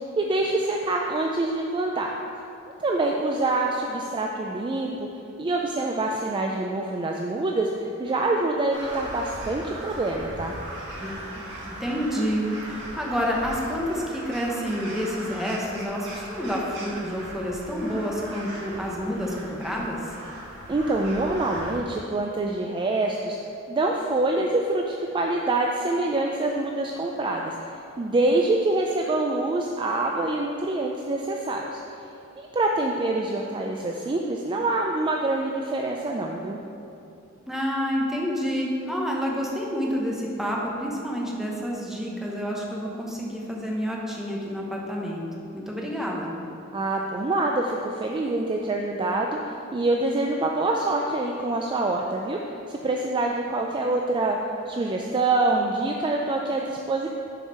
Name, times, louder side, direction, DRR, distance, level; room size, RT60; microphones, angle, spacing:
voice 1, 0.2-2.2 2.8-5.1 5.4-10.6 20.7-23.4 23.7-31.8 32.4-36.6 46.7-49.3 49.7-54.4 54.7-57.1, right 2 dB, 25° right, 0 dB, 0.3 m, -25 dB
Crow, 8.7-21.8, right 1 dB, 55° right, 1.7 m, -39 dB
voice 2, 11.8-20.1 37.5-45.2 45.5-46.3, equal, ahead, -3 dB, 0.9 m, -29 dB
6.7 x 4.8 x 5.5 m, 2.8 s
head